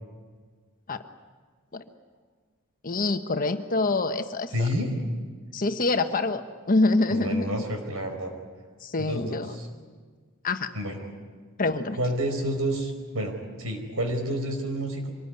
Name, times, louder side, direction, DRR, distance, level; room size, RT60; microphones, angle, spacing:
voice 1, 2.8-4.5 5.5-6.4 6.7-7.6 8.8-9.5 10.4-10.7 11.6-12.0, left 2 dB, 40° left, 7 dB, 1.2 m, -25 dB
voice 2, 4.5-4.9 7.1-8.3 9.0-9.7 10.7-11.0 11.9-13.3 13.6-15.1, equal, 75° right, 5 dB, 4.8 m, -29 dB
25.0 x 20.0 x 9.8 m, 1.5 s
head